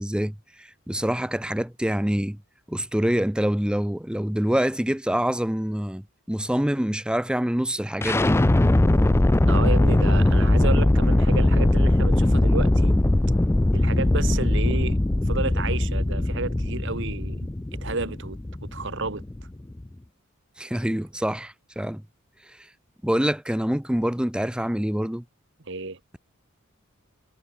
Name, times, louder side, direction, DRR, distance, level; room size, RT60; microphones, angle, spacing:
voice 1, 0.0-2.4 2.7-8.4 20.6-22.0 23.0-25.2, equal, 5° right, 0.7 m, -26 dB
sound 1, 8.0-19.9, left 1 dB, 10° left, 0.4 m, -20 dB
voice 2, 9.5-13.0 13.7-15.0 15.2-17.5 17.8-18.4 18.7-19.2 25.7-26.0, right 3 dB, 60° right, 1.6 m, -31 dB
head